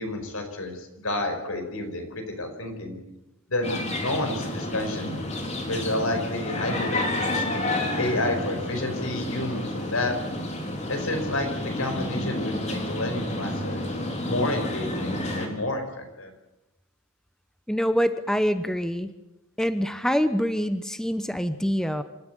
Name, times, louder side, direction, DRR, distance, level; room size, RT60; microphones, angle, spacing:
voice 1, 0.0-3.0 3.5-5.2 5.7-7.5 8.0-10.1 10.9-13.8 14.2-16.3, left 2 dB, 80° left, 6 dB, 5.0 m, -30 dB
sound 1, 3.6-15.5, left 1 dB, 35° left, 3.9 m, -30 dB
voice 2, 17.7-19.1 19.6-22.0, equal, 5° left, 10 dB, 0.9 m, -25 dB
27.0 x 13.5 x 9.2 m, 1.0 s
head